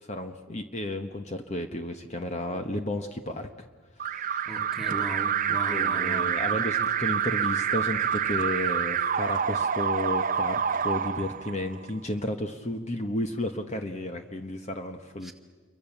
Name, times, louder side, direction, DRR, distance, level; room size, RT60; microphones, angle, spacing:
voice 1, 0.0-3.7 4.0-4.5 5.7-15.3, left 1 dB, 30° left, 6 dB, 1.1 m, -33 dB
Alarm, 4.0-11.9, right 8 dB, 40° right, 0.6 m, -27 dB
voice 2, 4.5-6.4 15.2-15.3, right 1 dB, ahead, 2 dB, 2.0 m, -37 dB
28.0 x 23.5 x 7.2 m, 1.5 s
head